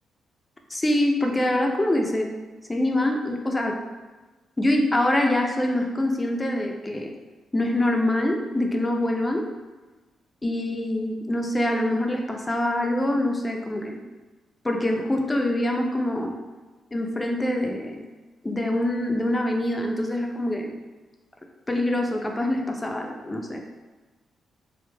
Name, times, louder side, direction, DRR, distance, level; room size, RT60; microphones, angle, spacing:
voice 1, 0.7-2.3 2.7-3.8 4.6-7.1 7.5-9.5 10.4-14.0 14.6-16.4 16.9-18.0 18.4-20.7 21.7-23.6, left 1 dB, 20° left, 2 dB, 0.5 m, -24 dB
3.2 x 2.0 x 3.3 m, 1.2 s
supercardioid pair, 60°, 0 cm